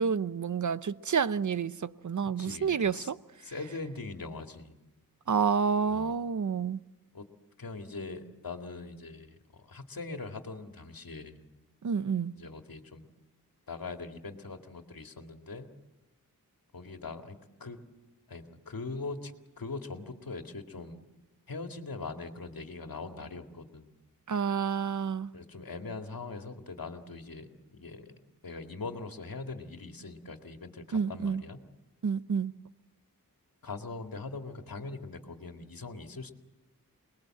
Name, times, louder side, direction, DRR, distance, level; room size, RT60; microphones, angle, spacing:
voice 1, 0.0-3.2 5.3-6.8 11.8-12.4 24.3-25.3 30.9-31.4 32.0-32.5, right 6 dB, 55° right, 0.8 m, -29 dB
voice 2, 2.4-3.1 3.4-4.8 5.9-6.2 7.1-7.3 7.6-11.4 12.4-13.1 13.7-15.7 16.7-17.8 18.3-21.0 21.5-23.9 25.3-28.1 28.4-31.6 33.6-36.3, left 3 dB, 75° left, 2.2 m, -41 dB
27.5 x 20.5 x 7.7 m
wide cardioid pair, 70°, 35 cm